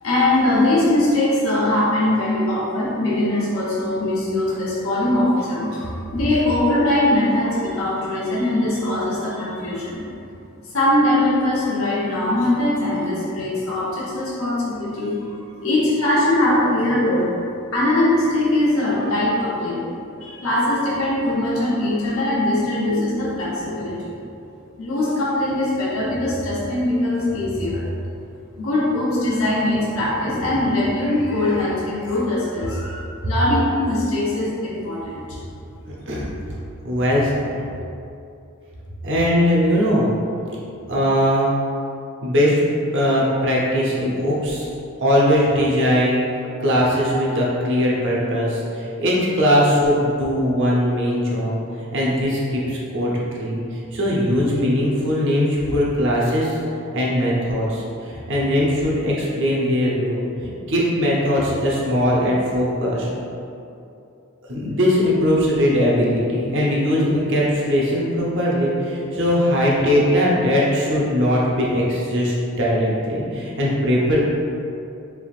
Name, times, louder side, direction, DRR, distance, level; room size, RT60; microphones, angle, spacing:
voice 1, 0.0-10.0 10.7-17.3 17.7-19.8 20.2-24.1 24.8-27.8 28.6-35.4, left 1 dB, 70° left, -8 dB, 0.9 m, -21 dB
voice 2, 35.9-36.3 36.8-37.5 39.0-40.1 40.9-41.6 42.2-42.6 42.9-44.7 45.0-46.2 46.6-56.6 56.9-63.1 64.5-74.2, equal, 60° right, -5 dB, 0.8 m, -20 dB
3.5 x 3.5 x 2.4 m, 2.6 s
head